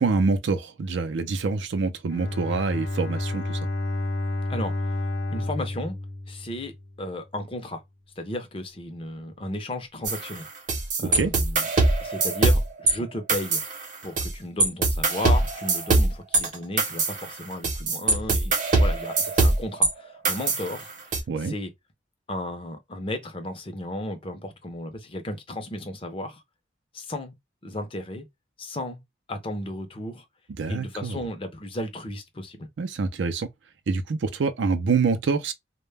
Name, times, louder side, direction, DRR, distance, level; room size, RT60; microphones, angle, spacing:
voice 1, 0.0-3.6 11.0-11.3 21.3-21.5 30.5-31.3 32.8-33.5 33.9-35.5, right 4 dB, 75° right, 0.4 m, -26 dB
Bowed string instrument, 2.1-7.0, left 1 dB, 80° left, 0.7 m, -30 dB
voice 2, 5.3-6.0 6.3-7.8 8.2-10.5 11.0-11.6 12.0-13.6 14.0-21.7 22.3-26.4 26.9-27.3 27.6-28.2 28.6-29.0 29.3-30.2 30.7-32.7, left 1 dB, 30° left, 0.5 m, -34 dB
sound 1, 10.0-12.9 13.3-14.3 14.6-19.9 20.2-21.2, right 3 dB, 40° right, 0.7 m, -22 dB
2.1 x 2.0 x 3.1 m
head